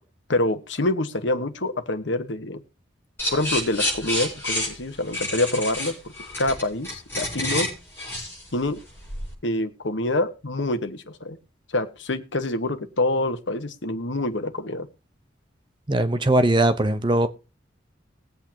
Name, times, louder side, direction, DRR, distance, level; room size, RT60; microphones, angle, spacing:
voice 1, 0.3-2.6 3.3-6.1 6.4-7.7 8.5-8.8 9.4-11.4 11.7-14.9, left 2 dB, 80° left, 1.3 m, -26 dB
sound 1, 3.2-9.3, left 1 dB, 10° left, 6.5 m, -29 dB
voice 2, 15.9-17.3, right 1 dB, 25° right, 0.8 m, -20 dB
20.0 x 8.4 x 2.9 m
head